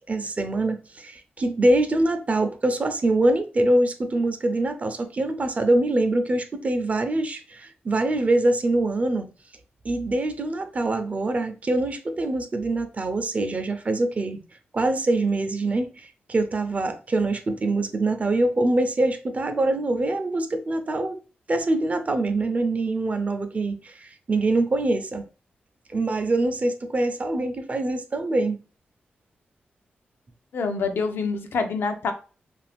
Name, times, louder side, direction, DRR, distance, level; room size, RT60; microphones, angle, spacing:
voice 1, 0.1-9.3 9.8-14.4 14.7-21.2 21.5-25.2 25.9-28.6, right 2 dB, 40° right, 0.5 m, -24 dB
voice 2, 30.5-32.1, left 4 dB, 75° left, 0.5 m, -26 dB
2.5 x 2.4 x 3.4 m
cardioid pair, 75°, 4 cm